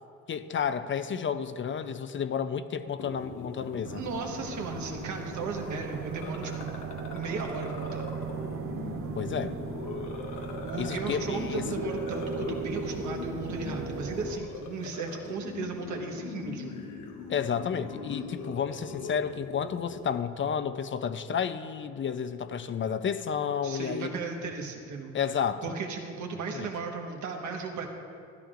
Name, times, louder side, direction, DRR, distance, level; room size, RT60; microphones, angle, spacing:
voice 1, 0.3-4.0 9.2-9.5 10.8-11.7 17.3-24.1 25.1-25.6 26.5-26.7, left 7 dB, 40° left, 11 dB, 0.5 m, -31 dB
sound 1, 3.0-20.2, left 4 dB, 85° left, 1.1 m, -40 dB
sound 2, 3.8-14.4, right 5 dB, 45° right, 0.7 m, -37 dB
voice 2, 3.9-6.7 7.1-8.0 10.6-16.7 23.6-25.1 25.6-27.9, right 4 dB, 70° right, 2 dB, 1.3 m, -36 dB
13.0 x 12.0 x 2.5 m, 2.4 s
cardioid pair, 90°, 30 cm